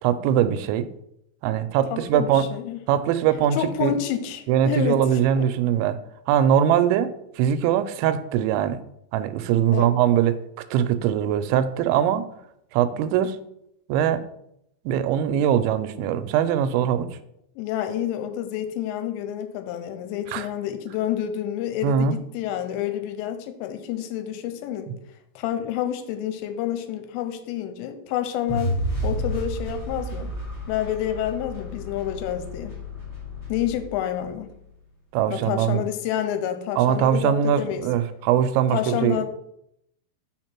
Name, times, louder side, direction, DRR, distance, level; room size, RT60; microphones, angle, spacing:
voice 1, 0.0-0.9 1.4-2.5 2.9-4.0 4.5-6.0 6.3-8.8 9.1-10.4 10.7-12.3 12.7-13.4 13.9-14.2 14.9-17.2 20.3-20.5 21.8-22.2 35.1-35.8 36.8-39.2, right 9 dB, 85° right, 2.9 m, -22 dB
voice 2, 1.9-2.8 3.5-5.0 5.4-5.5 9.7-9.9 17.6-24.9 25.4-28.8 29.0-30.3 30.7-32.8 33.5-34.5 35.3-37.9 38.7-39.3, left 10 dB, 85° left, 2.9 m, -28 dB
sound 1, 28.5-34.6, equal, 35° left, 0.9 m, -31 dB
6.2 x 5.2 x 4.4 m
omnidirectional pair, 5.2 m